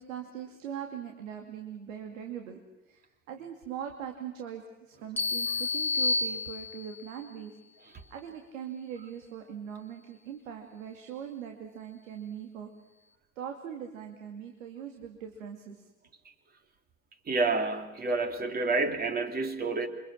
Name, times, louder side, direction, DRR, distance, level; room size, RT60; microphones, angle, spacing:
voice 1, 0.0-2.6 2.9-7.6 7.8-12.7 13.4-15.9, right 8 dB, 65° right, 4 dB, 2.5 m, -41 dB
sound 1, 5.2-7.1, left 3 dB, 5° left, 1.8 m, -30 dB
voice 2, 17.3-19.9, right 3 dB, 20° right, 6 dB, 2.6 m, -29 dB
28.0 x 24.5 x 6.4 m, 1.0 s
figure-of-eight pair, 85°, 42 cm